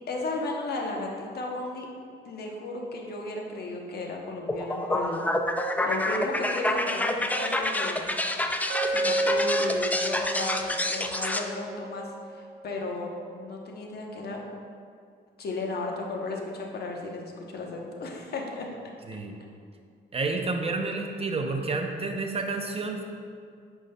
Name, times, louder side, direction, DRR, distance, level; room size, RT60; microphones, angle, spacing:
voice 1, 0.1-1.9 2.2-5.2 5.8-8.0 8.9-14.4 15.4-18.7, left 2 dB, 55° left, 0 dB, 1.0 m, -34 dB
sound 1, 4.5-11.4, left 1 dB, 10° left, 0.4 m, -28 dB
Glass, 8.7-12.8, right 1 dB, 85° right, 0.7 m, -31 dB
voice 2, 20.1-23.0, right 3 dB, 30° right, 3 dB, 0.7 m, -30 dB
8.5 x 5.3 x 2.3 m, 2.2 s
cardioid pair, 90°, 20 cm